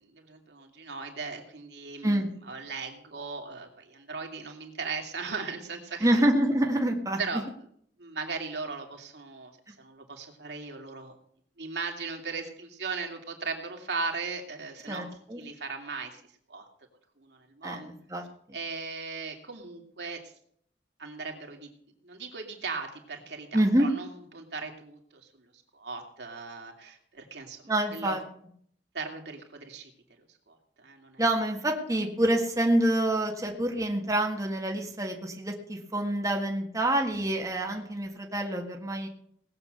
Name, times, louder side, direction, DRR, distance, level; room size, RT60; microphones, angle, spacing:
voice 1, 0.1-6.2 7.2-7.4 8.0-9.5 9.8-11.1 11.6-15.0 15.4-16.2 16.5-16.7 17.2-17.9 18.5-20.3 21.0-21.7 22.0-25.2 25.7-28.2 28.9-29.9 30.5-31.2, right 4 dB, 70° right, 2 dB, 2.6 m, -38 dB
voice 2, 6.0-7.2 14.9-15.4 17.6-17.8 18.1-18.2 23.5-23.9 27.7-28.2 31.2-39.1, right 1 dB, 20° right, 1 dB, 1.7 m, -27 dB
18.5 x 7.8 x 6.7 m, 0.64 s
head